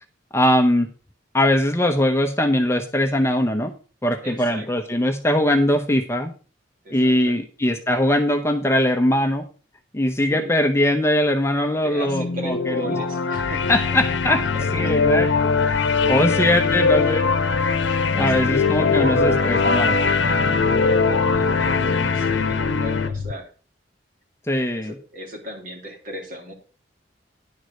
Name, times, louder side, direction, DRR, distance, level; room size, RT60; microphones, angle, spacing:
voice 1, 0.3-0.9 1.3-3.7 4.0-6.3 6.9-9.4 9.9-13.0 13.7-14.4 14.7-17.3 18.2-19.9 24.5-24.9, left 1 dB, 15° left, 5 dB, 0.8 m, -21 dB
voice 2, 4.2-4.7 6.8-7.4 10.3-10.6 11.6-14.0 14.5-15.3 15.9-16.7 17.9-19.6 19.8-23.5 24.7-26.5, equal, 45° right, 1 dB, 2.9 m, -37 dB
sound 1, 12.0-23.1, left 4 dB, 65° left, 0.9 m, -21 dB
sound 2, 13.3-23.3, left 5 dB, 85° left, 0.5 m, -29 dB
10.5 x 4.8 x 6.4 m, 0.36 s
head